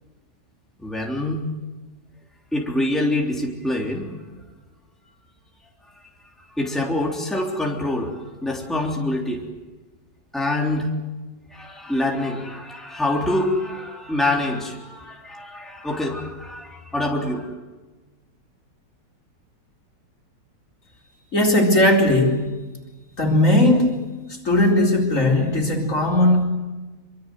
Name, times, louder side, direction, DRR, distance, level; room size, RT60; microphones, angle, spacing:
voice 1, 0.8-1.5 2.5-4.2 6.6-9.5 10.3-11.0 11.5-17.5, left 1 dB, ahead, 0 dB, 3.5 m, -25 dB
voice 2, 21.3-22.4 23.2-24.0 24.3-26.4, left 1 dB, 45° left, 1 dB, 4.5 m, -18 dB
26.0 x 24.5 x 7.9 m, 1.2 s
omnidirectional pair, 1.9 m